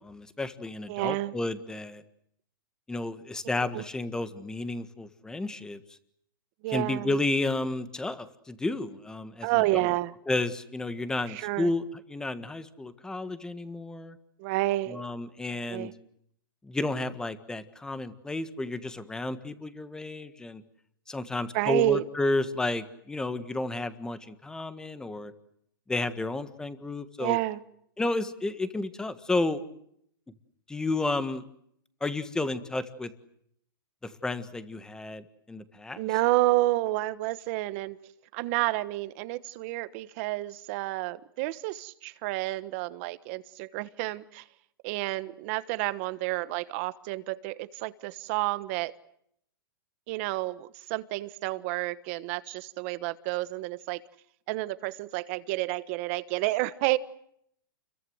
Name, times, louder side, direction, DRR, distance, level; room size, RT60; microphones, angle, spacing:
voice 1, 0.0-2.0 2.9-5.8 6.7-9.9 10.3-11.8 12.1-14.2 14.9-15.9 16.6-20.6 21.1-25.3 25.9-27.4 28.0-29.6 30.7-31.4 32.0-33.1 34.0-36.1, left 2 dB, 5° left, 12 dB, 1.6 m, -32 dB
voice 2, 0.9-1.3 3.7-3.8 6.6-7.1 9.4-10.1 11.3-11.7 14.4-15.0 15.7-15.9 21.5-22.1 27.2-27.6 35.9-38.0 38.3-44.4 44.8-48.9 50.1-54.0 54.5-57.0, right 19 dB, 35° right, 15 dB, 1.3 m, -30 dB
29.5 x 22.5 x 8.0 m, 0.71 s
hypercardioid pair, 155°, 12 cm